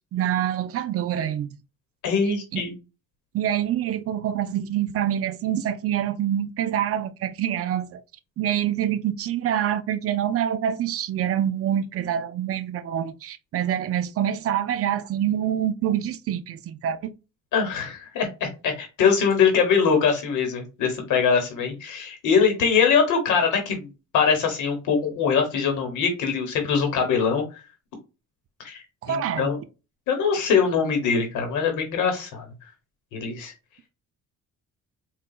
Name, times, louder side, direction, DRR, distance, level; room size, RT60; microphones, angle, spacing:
voice 1, 0.1-1.5 2.5-2.6 3.3-8.0 8.4-17.1 29.0-29.5, right 10 dB, 50° right, 0.4 m, -26 dB
voice 2, 2.0-2.7 17.5-27.6 28.6-29.6 30.1-32.4 33.1-33.5, left 6 dB, 85° left, 1.0 m, -23 dB
4.0 x 2.3 x 2.3 m
cardioid pair, 90°, 30 cm